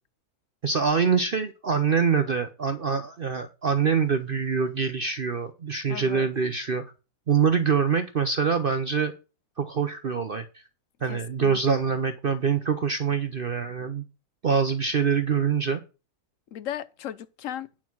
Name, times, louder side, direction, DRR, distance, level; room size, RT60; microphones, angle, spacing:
voice 1, 0.6-6.8 7.3-9.1 9.6-10.4 11.0-14.0 14.4-15.8, right 6 dB, 50° right, 0.7 m, -25 dB
voice 2, 5.9-6.3 11.0-11.9 16.5-17.7, left 10 dB, 65° left, 1.0 m, -37 dB
9.4 x 5.8 x 6.1 m
omnidirectional pair, 1.6 m